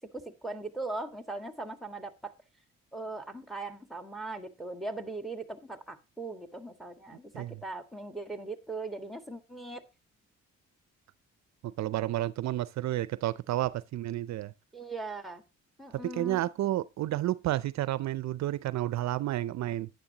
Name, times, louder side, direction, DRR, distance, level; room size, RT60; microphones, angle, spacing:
voice 1, 0.1-2.3 2.9-9.8 14.7-15.4 15.8-16.4, right 3 dB, ahead, 1.7 m, -39 dB
voice 2, 11.6-14.5 16.0-19.9, right 14 dB, 65° right, 0.5 m, -31 dB
11.0 x 9.5 x 2.8 m
cardioid pair, 90°, 30 cm